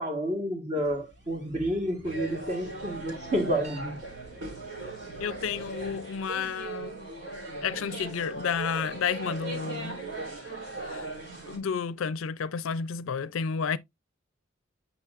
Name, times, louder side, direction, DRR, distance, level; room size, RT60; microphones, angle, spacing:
voice 1, 0.0-4.0, equal, 35° right, 1.5 m, -30 dB
sound 1, 0.7-6.1, right 2 dB, 55° right, 2.6 m, -51 dB
sound 2, 2.0-11.6, right 3 dB, 80° right, 3.7 m, -39 dB
voice 2, 5.2-7.1 7.6-10.0 10.4-11.1 11.5-13.8, left 6 dB, 80° left, 0.4 m, -31 dB
8.3 x 5.5 x 2.4 m
head